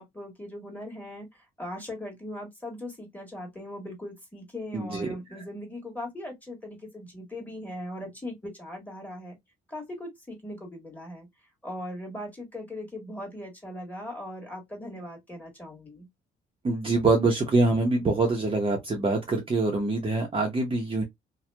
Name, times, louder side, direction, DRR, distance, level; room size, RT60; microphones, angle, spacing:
voice 1, 0.0-9.4 9.7-11.3 11.6-16.1, left 1 dB, 10° left, 1.5 m, -39 dB
voice 2, 4.7-5.1 16.6-21.0, right 3 dB, 25° right, 0.7 m, -25 dB
2.7 x 2.2 x 2.2 m
cardioid pair, 90°, 20 cm